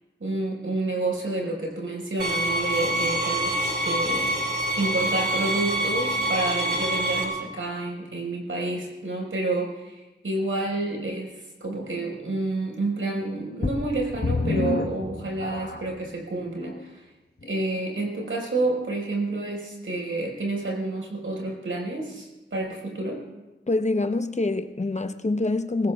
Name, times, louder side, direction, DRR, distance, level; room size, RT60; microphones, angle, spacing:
voice 1, 0.2-17.0 17.4-23.2, right 2 dB, 85° right, 4.6 m, -29 dB
sound 1, 2.2-7.2, right 1 dB, 50° right, 3.7 m, -26 dB
sound 2, 13.6-16.1 16.7-16.8 17.4-17.5, left 3 dB, 50° left, 1.2 m, -28 dB
voice 2, 23.7-25.9, left 2 dB, 35° left, 0.7 m, -25 dB
23.5 x 19.0 x 2.3 m
wide cardioid pair, 90°, 21 cm